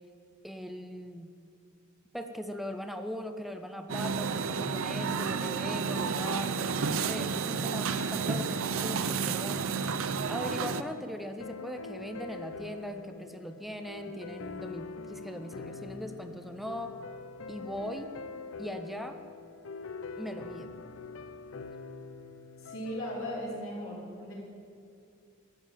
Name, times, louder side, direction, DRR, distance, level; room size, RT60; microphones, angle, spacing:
voice 1, 0.4-1.4 2.1-9.6 10.3-16.9 17.5-18.1 18.6-19.2 20.2-20.7, equal, ahead, 6 dB, 0.5 m, -40 dB
sound 1, 3.9-10.8, right 5 dB, 80° right, 0.6 m, -31 dB
sound 2, 7.8-9.4, left 2 dB, 45° left, 2.4 m, -53 dB
sound 3, 11.4-23.4, left 4 dB, 75° left, 0.6 m, -44 dB
voice 2, 22.6-24.3, equal, 90° left, -6 dB, 4.0 m, -37 dB
12.0 x 7.3 x 8.9 m, 2.3 s
head